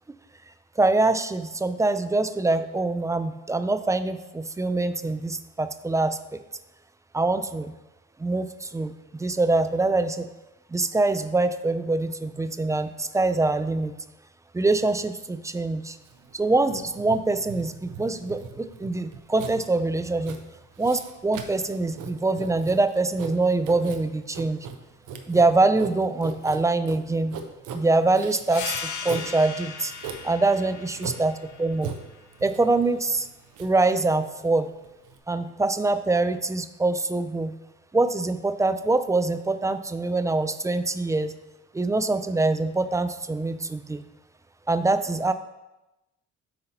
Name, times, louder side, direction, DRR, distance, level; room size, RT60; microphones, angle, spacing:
voice 1, 0.8-6.4 7.1-7.7 8.2-10.3 10.7-13.9 14.5-16.0 16.3-20.4 20.8-24.6 25.3-27.4 27.7-29.9 30.2-31.9 32.4-33.3 33.6-34.7 35.3-37.6 37.9-41.3 41.7-44.0 44.7-45.3, right 2 dB, 10° right, 11 dB, 0.3 m, -24 dB
Writing, 16.0-35.2, right 6 dB, 80° right, 0.7 m, -40 dB
sound 1, 28.5-33.7, left 6 dB, 75° left, 0.8 m, -39 dB
8.1 x 2.8 x 5.2 m, 1.0 s
cardioid pair, 90°, 30 cm